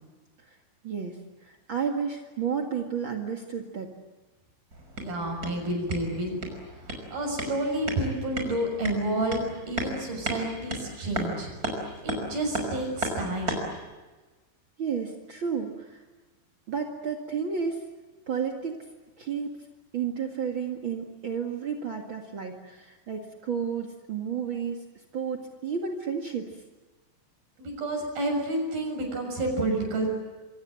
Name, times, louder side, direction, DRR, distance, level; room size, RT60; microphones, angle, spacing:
voice 1, 0.8-3.9 14.8-16.0 16.7-17.8 18.3-18.8 19.2-19.5 19.9-24.8 25.1-26.5, right 6 dB, 70° right, 2 dB, 1.1 m, -32 dB
sound 1, 4.7-13.8, right 1 dB, 20° right, 5.5 m, -35 dB
voice 2, 5.0-6.4 7.1-11.5 11.8-13.7 27.6-30.1, right 1 dB, 50° right, 2 dB, 8.2 m, -30 dB
27.5 x 25.0 x 7.6 m, 1.2 s
omnidirectional pair, 5.6 m